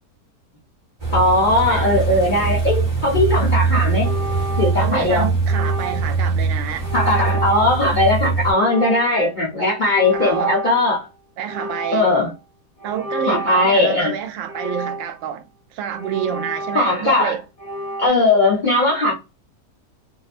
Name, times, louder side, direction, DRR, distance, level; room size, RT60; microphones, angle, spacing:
sound 1, 1.0-8.5, right 4 dB, 15° right, 0.7 m, -22 dB
voice 1, 1.1-4.1 4.6-5.3 6.9-11.1 11.9-12.3 13.3-14.1 16.7-17.4 18.0-19.1, left 2 dB, 45° left, 0.7 m, -18 dB
sound 2, 4.0-5.1 5.4-6.2 6.8-7.9 8.5-9.3 9.8-11.1 11.4-12.2 12.8-13.9 14.5-15.4 15.9-17.2 17.6-18.1, right 1 dB, 80° left, 0.3 m, -31 dB
voice 2, 4.7-6.9 10.1-10.5 11.4-12.1 12.8-15.4 15.7-17.4, right 9 dB, 70° right, 0.8 m, -28 dB
2.7 x 2.0 x 2.4 m
omnidirectional pair, 1.6 m